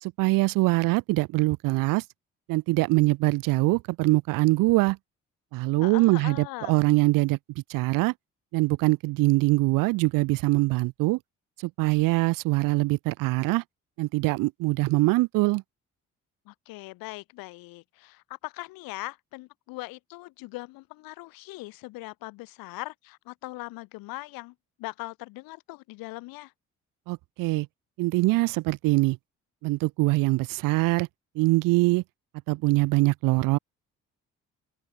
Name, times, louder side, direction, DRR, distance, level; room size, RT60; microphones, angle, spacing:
voice 1, 0.0-2.0 2.5-5.0 5.5-7.4 7.7-8.1 8.5-11.2 11.6-13.6 14.0-15.6 27.1-27.7 28.0-29.2 29.6-31.1 31.4-32.0 32.5-33.6, right 22 dB, 70° right, 0.5 m, -23 dB
voice 2, 5.8-6.8 16.5-26.5, left 22 dB, 80° left, 3.6 m, -40 dB
open air
hypercardioid pair, 50°, 34 cm